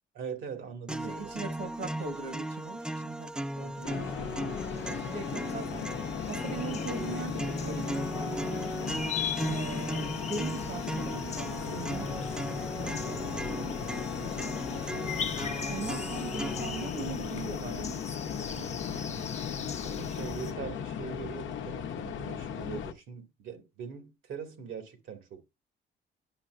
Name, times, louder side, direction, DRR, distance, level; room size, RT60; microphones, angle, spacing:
voice 1, 0.1-1.1 4.7-5.0 14.2-14.5 19.8-25.4, right 7 dB, 75° right, 1.9 m, -42 dB
sound 1, 0.9-16.9, right 1 dB, 5° right, 0.4 m, -38 dB
voice 2, 1.0-4.3 4.9-5.9 6.3-8.7 9.4-12.3 12.8-13.8 14.1-15.1 15.6-19.3 22.4-22.5, right 4 dB, 60° right, 1.5 m, -41 dB
sound 2, 3.8-22.9, left 8 dB, 70° left, 0.8 m, -37 dB
sound 3, 4.5-20.5, left 5 dB, 35° left, 0.9 m, -39 dB
10.5 x 5.8 x 2.5 m
cardioid pair, 90°, 20 cm